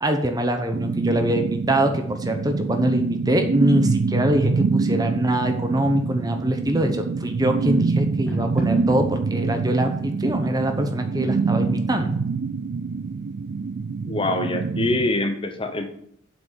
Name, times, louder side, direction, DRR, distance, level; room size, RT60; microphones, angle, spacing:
voice 1, 0.0-12.2, right 1 dB, 20° right, 6 dB, 0.9 m, -23 dB
sound 1, 0.7-15.1, right 4 dB, 55° right, 0.3 m, -25 dB
sound 2, 4.4-14.5, equal, 5° left, 2.5 m, -42 dB
voice 2, 14.0-15.9, left 2 dB, 25° left, 6 dB, 0.9 m, -24 dB
7.8 x 6.1 x 7.5 m, 0.67 s
head